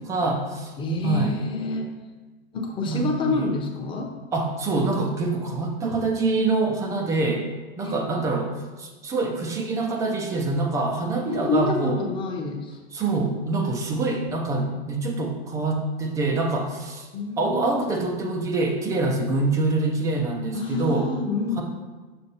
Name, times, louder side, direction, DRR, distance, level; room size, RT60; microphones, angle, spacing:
voice 1, 0.1-0.7 1.0-1.4 2.8-3.5 4.3-7.5 7.8-8.5 8.8-12.0 12.9-17.1 17.4-21.1, right 3 dB, 10° right, 2 dB, 0.3 m, -25 dB
voice 2, 0.8-1.8 2.5-4.1 7.8-8.0 11.3-12.8 17.1-17.9 20.5-21.6, left 2 dB, 15° left, 2 dB, 0.7 m, -27 dB
6.7 x 6.2 x 2.8 m, 1.3 s
supercardioid pair, 140°, 33 cm